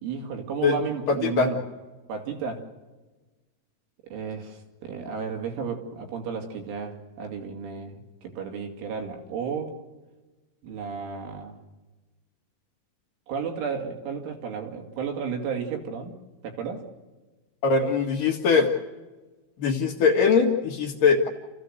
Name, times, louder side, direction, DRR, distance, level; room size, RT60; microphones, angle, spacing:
voice 1, 0.0-1.6 2.1-2.7 4.1-9.8 10.6-11.6 13.3-16.1 16.4-16.8, right 6 dB, 70° right, 4 dB, 4.9 m, -33 dB
voice 2, 1.1-1.5 17.6-18.7 19.6-21.3, left 5 dB, 55° left, 3 dB, 2.7 m, -21 dB
29.5 x 15.5 x 7.9 m, 1.2 s
omnidirectional pair, 5.8 m